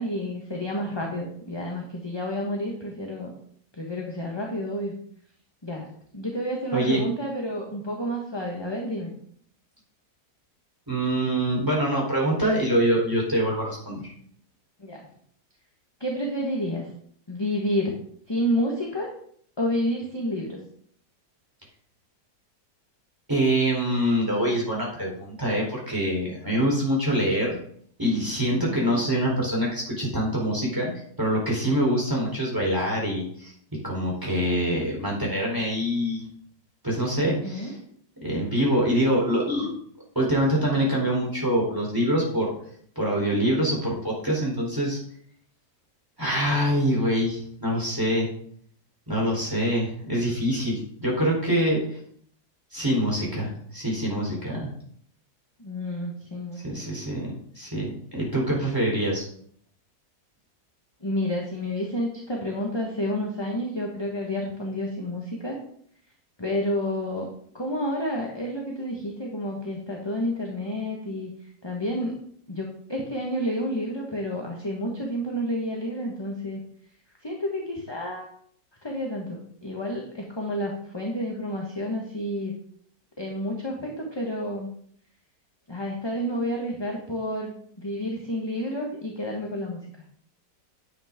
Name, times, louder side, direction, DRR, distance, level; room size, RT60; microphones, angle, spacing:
voice 1, 0.0-3.3 3.7-4.9 5.6-5.9 6.1-9.1 14.8-15.0 16.0-16.9 17.3-17.9 18.3-19.1 19.6-20.6 28.5-29.0 37.3-37.8 55.6-56.9 61.0-65.6 66.4-67.3 67.5-71.3 71.6-72.2 72.5-76.6 77.2-78.3 78.8-82.5 83.2-84.7 85.7-87.5 87.8-89.8, equal, 15° left, -1 dB, 1.3 m, -30 dB
voice 2, 10.9-14.1 23.3-27.6 28.0-33.5 33.8-36.2 36.8-37.8 38.2-39.7 40.1-42.5 43.0-45.0 46.2-48.3 49.1-52.0 52.7-54.7 56.6-57.3 57.6-59.3, equal, 10° right, -3 dB, 4.1 m, -25 dB
10.0 x 8.7 x 3.7 m, 0.62 s
omnidirectional pair, 1.9 m